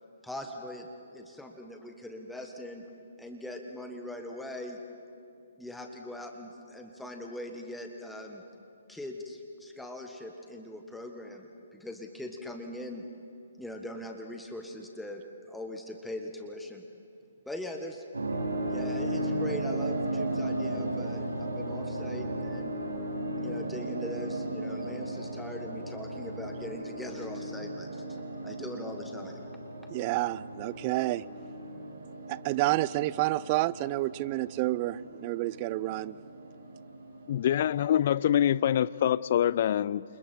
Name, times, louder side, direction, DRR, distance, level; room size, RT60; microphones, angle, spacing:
voice 1, 0.2-2.8 3.2-4.8 5.6-8.4 8.9-13.0 13.6-16.8 17.4-18.0 18.7-22.8 23.4-28.0 28.4-29.5, left 1 dB, 5° left, 1.5 m, -41 dB
sound 1, 18.1-37.8, right 1 dB, 80° right, 6.2 m, -36 dB
voice 2, 29.9-31.2 32.3-36.2, right 18 dB, 35° right, 0.5 m, -29 dB
voice 3, 37.3-40.0, left 10 dB, 50° left, 0.5 m, -25 dB
29.0 x 28.0 x 4.5 m
figure-of-eight pair, 130°, 0 cm